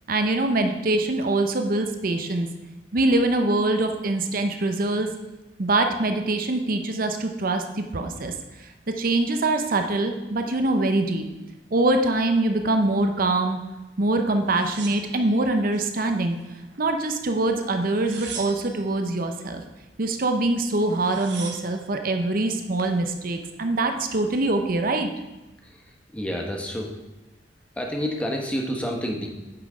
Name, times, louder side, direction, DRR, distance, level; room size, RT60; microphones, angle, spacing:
voice 1, 0.1-2.5 2.9-5.1 5.6-8.3 8.6-11.2 11.7-13.6 14.0-16.4 16.8-19.6 20.0-25.1, right 2 dB, 55° right, 6 dB, 0.7 m, -24 dB
sound 1, 14.5-15.9 16.3-17.1 17.8-18.9 20.5-20.6 20.8-21.8 22.5-23.0, right 6 dB, 70° right, 1.3 m, -40 dB
voice 2, 25.6-26.9 27.8-29.3, equal, 5° left, 1 dB, 1.2 m, -29 dB
8.9 x 6.1 x 4.9 m, 1.0 s
head